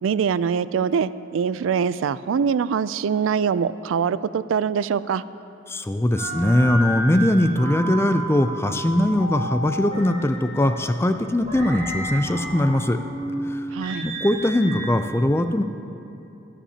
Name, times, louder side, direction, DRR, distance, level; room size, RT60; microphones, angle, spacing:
voice 1, 0.0-5.2 13.7-14.1, right 6 dB, 80° right, 16 dB, 0.3 m, -23 dB
voice 2, 5.7-13.0 13.5-13.7 14.0-15.6, left 1 dB, 15° left, 8 dB, 0.4 m, -21 dB
sound 1, 6.2-14.9, right 1 dB, 35° right, 2.3 m, -32 dB
22.5 x 10.0 x 2.8 m, 2.8 s
head